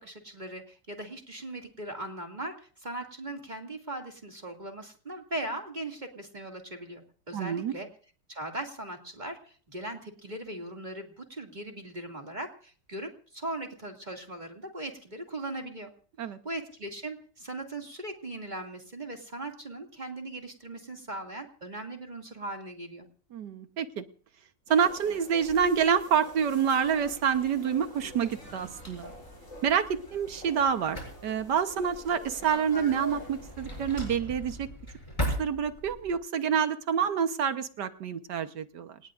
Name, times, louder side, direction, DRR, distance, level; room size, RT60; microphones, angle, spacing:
voice 1, 0.0-7.9 8.3-15.9 16.2-23.1, right 1 dB, 25° right, 3 dB, 2.5 m, -39 dB
voice 2, 7.3-7.7 16.2-16.4 23.3-24.0 24.7-29.1 29.6-34.7 35.4-39.0, right 7 dB, 70° right, 10 dB, 1.7 m, -27 dB
sound 1, 24.7-34.2, left 1 dB, 40° left, 7.2 m, -46 dB
Drawer open or close, 26.8-36.1, equal, 15° left, 7.0 m, -40 dB
27.5 x 19.0 x 2.5 m, 0.41 s
omnidirectional pair, 1.9 m